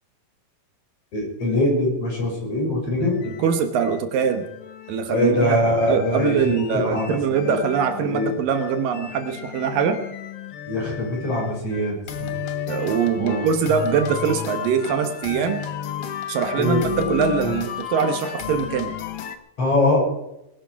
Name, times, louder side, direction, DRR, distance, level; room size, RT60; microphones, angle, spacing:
voice 1, 1.1-3.2 5.1-7.6 8.0-8.4 10.7-12.3 13.2-13.5 16.5-17.5 19.6-20.0, left 1 dB, 45° left, -2 dB, 6.9 m, -23 dB
sound 1, 3.1-19.4, left 9 dB, 65° left, 1.5 m, -33 dB
voice 2, 3.4-4.5 4.9-5.6 5.9-10.0 12.7-15.6 16.3-19.0, right 6 dB, 75° right, 8 dB, 2.9 m, -23 dB
20.5 x 12.0 x 4.7 m, 0.83 s
omnidirectional pair, 4.0 m